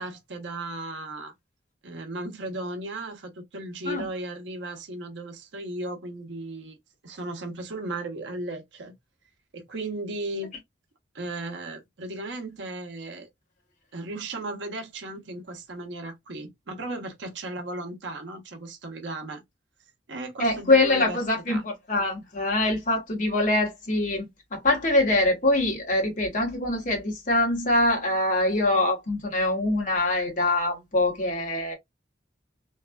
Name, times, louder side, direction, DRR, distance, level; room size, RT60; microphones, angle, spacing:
voice 1, 0.0-1.3 1.8-6.8 7.0-8.9 9.5-10.5 11.1-13.3 13.9-19.4 20.1-21.2 21.5-21.6, right 2 dB, 80° right, 0.7 m, -36 dB
voice 2, 20.4-31.7, left 2 dB, 45° left, 1.0 m, -24 dB
3.0 x 2.3 x 2.2 m
head